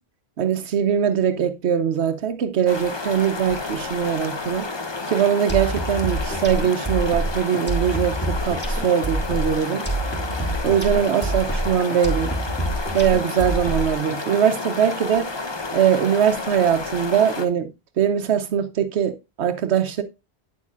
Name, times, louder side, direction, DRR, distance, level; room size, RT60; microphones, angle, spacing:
voice 1, 0.4-4.7 5.1-9.8 10.6-12.3 12.9-15.3 15.7-17.7 18.0-20.0, right 8 dB, 90° right, 1.0 m, -21 dB
sound 1, 2.7-17.5, left 3 dB, 25° left, 0.8 m, -31 dB
sound 2, 5.5-14.1, right 2 dB, 10° left, 2.5 m, -26 dB
9.3 x 8.2 x 2.5 m
omnidirectional pair, 1.1 m